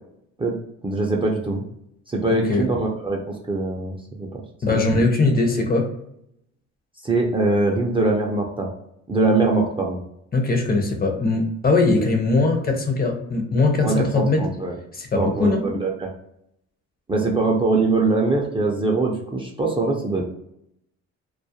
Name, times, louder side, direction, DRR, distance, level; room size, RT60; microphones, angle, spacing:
voice 1, 0.8-1.6 2.1-4.4 4.7-5.0 7.0-8.7 9.1-10.0 13.8-14.7 15.1-16.1 17.1-20.2, right 3 dB, 20° right, -2 dB, 0.4 m, -22 dB
voice 2, 2.3-2.7 4.6-5.9 10.3-14.4 14.9-15.7, left 3 dB, 30° left, 3 dB, 0.6 m, -20 dB
2.3 x 2.0 x 2.7 m, 0.76 s
cardioid pair, 90°, 30 cm